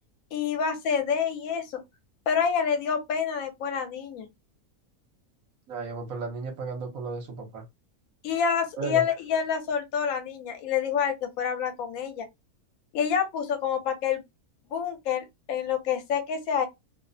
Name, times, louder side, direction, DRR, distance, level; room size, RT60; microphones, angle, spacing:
voice 1, 0.3-1.8 2.3-4.3 8.2-12.2 12.9-14.2 14.7-16.7, left 7 dB, 75° left, 1.0 m, -27 dB
voice 2, 5.7-7.6 8.8-9.0, right 4 dB, 70° right, 1.1 m, -34 dB
2.7 x 2.0 x 2.5 m
omnidirectional pair, 1.5 m